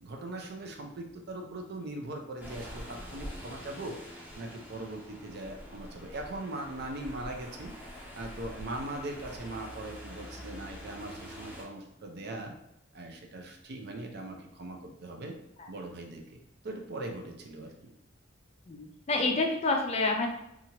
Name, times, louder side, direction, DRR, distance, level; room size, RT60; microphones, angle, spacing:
voice 1, 0.0-7.7 8.1-12.6 12.9-15.4 15.7-16.4 16.6-17.9, right 2 dB, 55° right, 2 dB, 0.5 m, -40 dB
sound 1, 2.4-11.6, equal, 10° right, 0.8 m, -45 dB
voice 2, 18.7-20.3, left 3 dB, 30° left, 2 dB, 0.4 m, -28 dB
2.8 x 2.4 x 2.8 m, 0.83 s
head